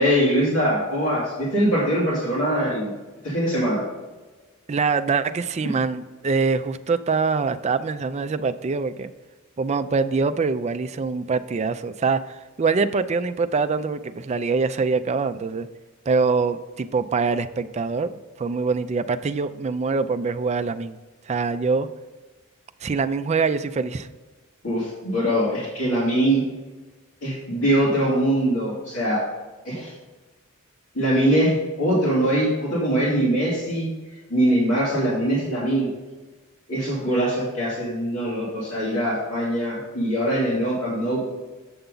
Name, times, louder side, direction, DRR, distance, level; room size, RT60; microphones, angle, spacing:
voice 1, 0.0-2.9 3.2-3.8 24.6-26.4 27.2-29.3 29.6-29.9 30.9-33.9 34.3-35.9 36.7-41.2, right 1 dB, 75° left, -8 dB, 2.6 m, -22 dB
voice 2, 4.7-9.1 9.6-12.2 12.6-15.7 16.1-21.0 21.3-21.9 22.8-24.1, right 4 dB, 30° right, 10 dB, 0.4 m, -24 dB
7.8 x 6.9 x 3.8 m, 1.3 s
head